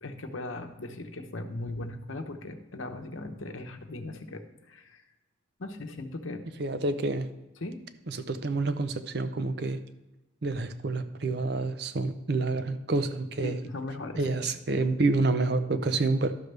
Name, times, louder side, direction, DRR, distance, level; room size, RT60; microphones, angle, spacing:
voice 1, 0.0-5.0 5.6-6.4 7.6-7.8 13.4-14.4, left 2 dB, 85° left, 6 dB, 0.9 m, -38 dB
voice 2, 6.6-7.3 8.1-9.8 10.4-13.6 14.2-16.3, right 3 dB, 55° right, 11 dB, 0.6 m, -28 dB
12.0 x 6.5 x 3.4 m, 1.0 s
head